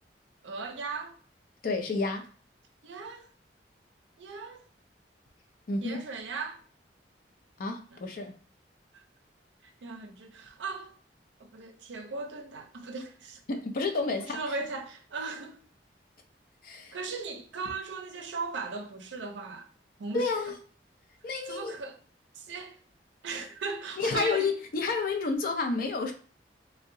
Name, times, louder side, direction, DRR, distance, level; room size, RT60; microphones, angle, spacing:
voice 1, 0.4-1.2 2.8-3.3 4.2-4.6 5.8-6.6 7.9-8.0 8.9-9.0 9.6-10.9 11.4-13.4 14.2-15.6 16.9-19.7 20.0-20.2 21.5-22.0 22.3-22.8 23.2-24.5, right 4 dB, 85° right, 0.5 m, -38 dB
voice 2, 1.6-2.3 5.7-6.0 7.6-8.3 13.5-14.4 16.6-17.0 20.1-20.6 21.2-21.7 24.0-26.1, left 4 dB, 55° left, 0.5 m, -30 dB
2.7 x 2.1 x 3.6 m
head